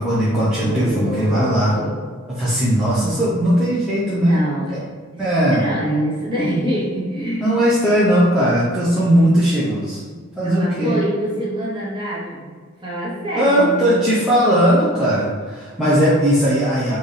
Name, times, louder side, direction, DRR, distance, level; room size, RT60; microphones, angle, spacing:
voice 1, 0.0-1.7 2.3-4.4 4.7-4.8 5.2-5.7 7.4-10.0 10.4-11.0 13.4-17.0, equal, 5° right, -10 dB, 0.5 m, -18 dB
voice 2, 0.6-2.0 4.2-4.8 5.1-7.5 10.4-14.0, right 1 dB, 20° right, -6 dB, 0.9 m, -25 dB
4.0 x 2.6 x 3.2 m, 1.5 s
head